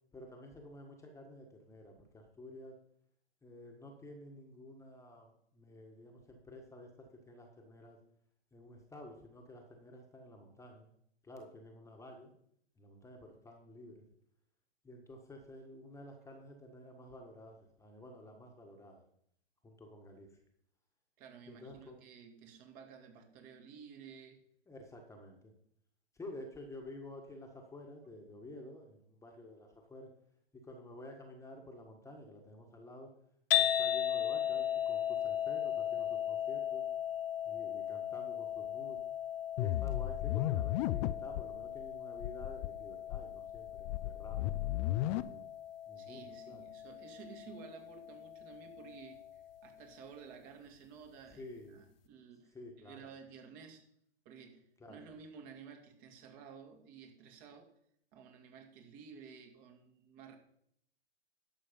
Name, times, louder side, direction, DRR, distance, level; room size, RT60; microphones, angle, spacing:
voice 1, 0.1-2.8 3.4-8.0 8.5-10.9 11.2-12.3 12.8-14.1 14.8-19.0 19.6-20.4 21.5-22.0 24.7-25.5 26.1-30.1 30.6-33.1 33.5-36.8 37.4-39.0 39.6-45.4 45.9-46.6 51.3-51.8 52.5-53.1 54.8-55.0, left 1 dB, 10° left, 2 dB, 1.6 m, -51 dB
voice 2, 21.2-24.4 46.0-53.9 54.2-57.7 58.1-60.4, right 6 dB, 40° right, 3 dB, 2.4 m, -53 dB
sound 1, 33.5-49.7, left 11 dB, 60° left, 1.3 m, -37 dB
sound 2, 39.6-41.5 41.8-41.9 42.2-42.7 43.1-45.2, left 14 dB, 30° left, 0.5 m, -34 dB
11.5 x 6.8 x 5.4 m, 0.69 s
hypercardioid pair, 115°, 32 cm